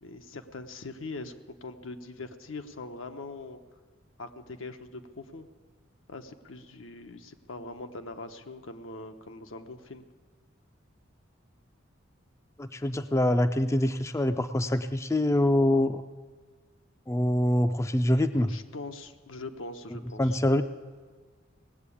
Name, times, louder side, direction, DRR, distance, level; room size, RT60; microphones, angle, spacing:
voice 1, 0.0-1.3 1.6-3.6 4.2-5.5 6.1-10.0 18.3-20.4, left 3 dB, 80° left, 7 dB, 0.9 m, -42 dB
voice 2, 12.6-16.0 17.1-18.5 20.2-20.6, left 1 dB, 15° left, 10 dB, 0.4 m, -25 dB
18.5 x 7.8 x 8.5 m, 1.5 s
head